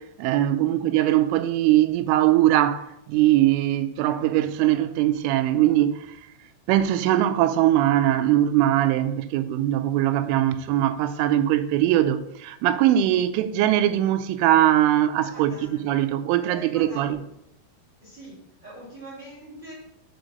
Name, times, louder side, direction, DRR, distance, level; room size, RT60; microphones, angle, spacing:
voice 1, 0.0-6.1 6.7-17.2, right 13 dB, 85° right, 3.0 m, -21 dB
voice 2, 15.2-15.8 16.4-17.2 18.0-19.7, right 1 dB, 30° right, 2.7 m, -43 dB
6.4 x 5.1 x 6.3 m
omnidirectional pair, 5.7 m